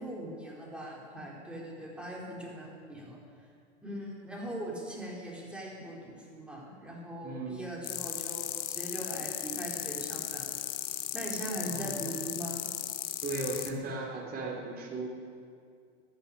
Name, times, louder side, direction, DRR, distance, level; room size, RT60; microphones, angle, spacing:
voice 1, 0.0-3.2 3.8-10.5 11.1-12.7, right 1 dB, 5° right, -4 dB, 4.2 m, -40 dB
voice 2, 7.2-7.6 11.6-12.1 13.2-15.1, right 2 dB, 25° right, -2 dB, 3.8 m, -37 dB
sound 1, 7.8-13.7, left 12 dB, 75° left, 1.3 m, -36 dB
13.5 x 10.5 x 9.9 m, 2.2 s
hypercardioid pair, 125°, 36 cm